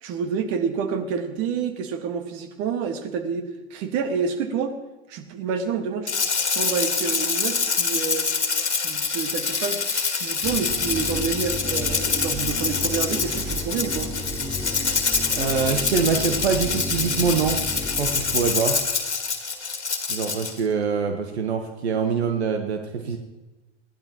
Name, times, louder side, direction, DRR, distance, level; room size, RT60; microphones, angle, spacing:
voice 1, 0.0-4.7 5.1-6.1 6.5-8.3 8.8-14.1, right 6 dB, 45° right, 8 dB, 1.7 m, -28 dB
Rattle (instrument), 6.1-20.6, left 5 dB, 85° left, 1.7 m, -26 dB
sound 1, 10.4-18.7, left 1 dB, 5° left, 0.9 m, -33 dB
voice 2, 15.3-17.6 18.0-18.8 20.1-23.2, right 6 dB, 70° right, 5 dB, 1.2 m, -24 dB
20.5 x 15.0 x 3.0 m, 1.1 s
figure-of-eight pair, 85°, 34 cm